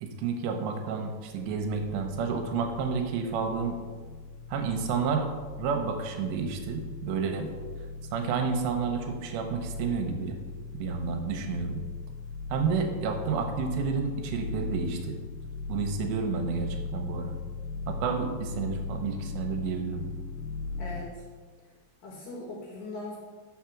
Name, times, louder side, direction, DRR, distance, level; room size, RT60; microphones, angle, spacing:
voice 1, 0.0-3.8 4.5-5.3 5.6-7.5 8.1-10.4 10.8-11.8 12.5-15.2 15.7-17.3 17.9-20.0, right 5 dB, 80° right, 4 dB, 2.8 m, -30 dB
sound 1, 1.3-21.0, left 4 dB, 85° left, 2.9 m, -39 dB
voice 2, 20.8-21.2 22.0-23.2, left 2 dB, 70° left, -2 dB, 2.4 m, -39 dB
6.2 x 5.6 x 5.8 m, 1.5 s
omnidirectional pair, 5.1 m